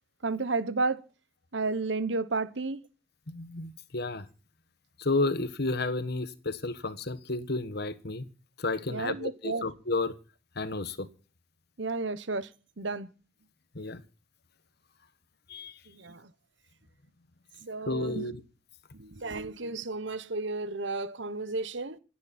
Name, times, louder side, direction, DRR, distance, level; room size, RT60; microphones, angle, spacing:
voice 1, 0.2-1.0 1.5-2.8 8.9-9.7 11.8-12.5 12.8-13.1 15.9-16.3 17.6-18.3 18.9-22.0, right 3 dB, 60° right, 1.1 m, -32 dB
voice 2, 3.3-4.2 5.0-8.3 8.6-10.1 10.5-11.1 13.7-14.0 15.5-15.8 17.9-18.4, left 2 dB, 55° left, 1.3 m, -32 dB
27.0 x 9.8 x 4.3 m
head